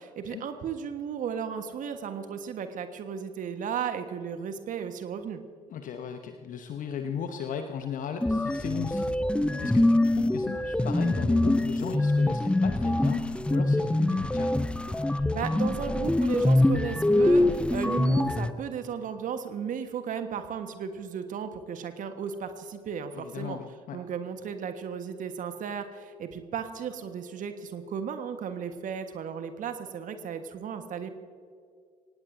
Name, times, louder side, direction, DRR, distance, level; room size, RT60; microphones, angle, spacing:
voice 1, 0.0-5.4 15.1-23.6 23.9-31.1, right 7 dB, 45° right, 8 dB, 1.4 m, -35 dB
voice 2, 5.7-14.5 23.1-24.0, left 7 dB, 45° left, 7 dB, 1.0 m, -36 dB
sound 1, 8.2-18.5, left 1 dB, 5° left, 0.7 m, -24 dB
24.5 x 18.5 x 2.7 m, 2.2 s
figure-of-eight pair, 55°, 19 cm